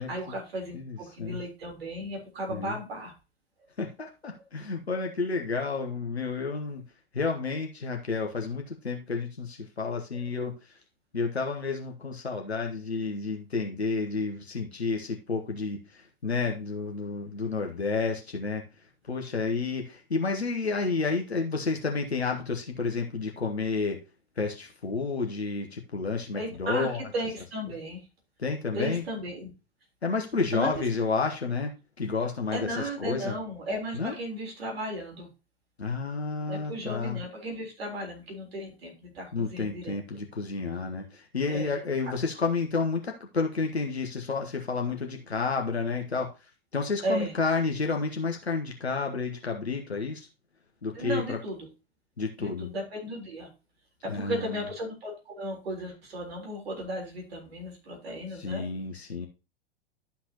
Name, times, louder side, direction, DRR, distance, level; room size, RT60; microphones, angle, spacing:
voice 1, 0.0-3.1 26.4-28.1 28.7-29.5 30.5-30.9 32.5-35.3 36.5-40.0 41.5-41.7 47.0-47.3 50.9-51.7 52.4-53.5 54.0-58.7, equal, 70° right, 1 dB, 3.7 m, -35 dB
voice 2, 0.7-1.4 2.5-2.8 3.8-6.8 7.1-10.8 11.1-18.7 19.1-24.0 24.4-27.0 28.4-29.0 30.0-31.7 32.0-33.4 33.9-34.1 35.8-37.2 39.3-46.3 46.7-50.3 50.8-51.4 52.2-52.7 54.0-54.6 58.3-59.3, left 4 dB, 85° left, 3 dB, 1.1 m, -30 dB
11.5 x 5.8 x 2.9 m, 0.30 s
figure-of-eight pair, 90°, 32 cm